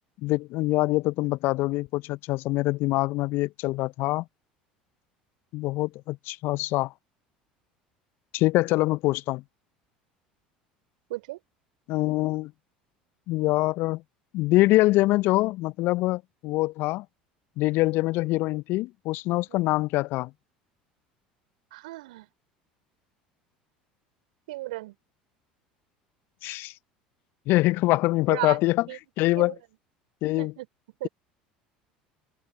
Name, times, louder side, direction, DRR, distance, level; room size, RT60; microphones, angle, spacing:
voice 1, 0.2-4.2 5.5-6.9 8.3-9.4 11.9-12.5 13.3-14.0 14.3-17.0 17.6-20.3 26.4-26.7 27.5-28.9 29.2-29.5 30.2-30.5, left 19 dB, 55° left, 0.9 m, -24 dB
voice 2, 21.7-22.3 24.5-24.9 28.3-28.6 28.9-29.0 29.4-29.5 30.4-30.7 31.0-31.1, right 19 dB, 65° right, 4.6 m, -35 dB
figure-of-eight pair, 70°, 4 cm